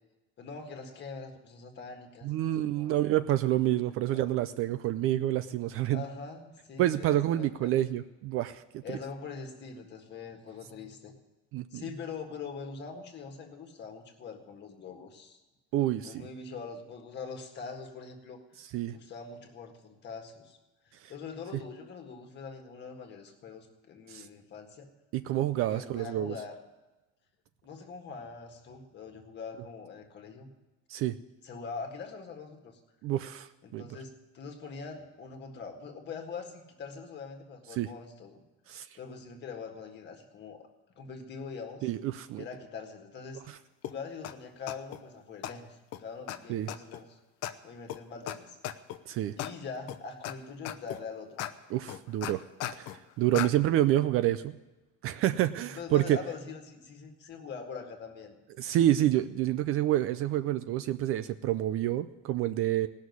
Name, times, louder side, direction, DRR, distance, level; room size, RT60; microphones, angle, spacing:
voice 1, 0.4-3.0 4.1-4.3 5.9-7.8 8.8-11.1 11.7-15.4 16.0-18.4 18.9-20.6 21.1-24.9 25.5-26.6 27.6-30.5 31.4-32.8 33.6-38.4 39.0-40.7 40.9-41.9 42.3-43.4 43.8-47.2 47.6-48.6 49.4-51.4 55.6-58.4, left 5 dB, 35° left, 4 dB, 1.7 m, -43 dB
voice 2, 2.2-6.0 6.8-9.0 11.5-11.8 15.7-16.3 18.6-19.0 21.0-21.1 21.5-21.6 24.1-24.3 25.1-26.3 30.9-31.1 33.0-34.0 37.7-37.9 38.7-38.9 41.8-42.4 43.5-43.6 46.5-46.7 49.1-49.4 51.7-52.4 52.8-54.6 55.0-56.2 58.6-62.9, right 13 dB, 45° right, 12 dB, 0.4 m, -28 dB
sound 1, 43.8-43.9 44.2-44.3 44.7-45.0 45.4-45.5 45.9-46.0 46.3-46.4 46.7-47.0 47.4-47.5 47.9-48.0 48.3-48.4 48.6-49.0 49.4-49.5 49.9-50.3 50.7-51.0 51.4-51.5 51.9-53.0 53.3-53.5, left 12 dB, 55° left, 0.7 m, -36 dB
17.5 x 6.5 x 9.4 m, 1.1 s
cardioid pair, 175°, 32 cm